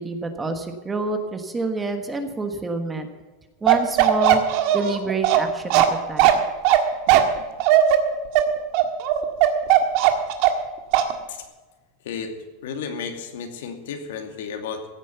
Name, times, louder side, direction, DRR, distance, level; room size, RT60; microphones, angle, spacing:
voice 1, 0.0-3.1 3.6-4.4 4.7-6.3, right 3 dB, 10° right, 6 dB, 1.3 m, -27 dB
Bark, 3.7-10.7 10.9-11.1, right 12 dB, 50° right, 1.7 m, -17 dB
voice 2, 12.6-14.9, left 6 dB, 85° left, 5 dB, 2.6 m, -33 dB
16.0 x 9.2 x 6.9 m, 1.3 s
supercardioid pair, 165°, 0 cm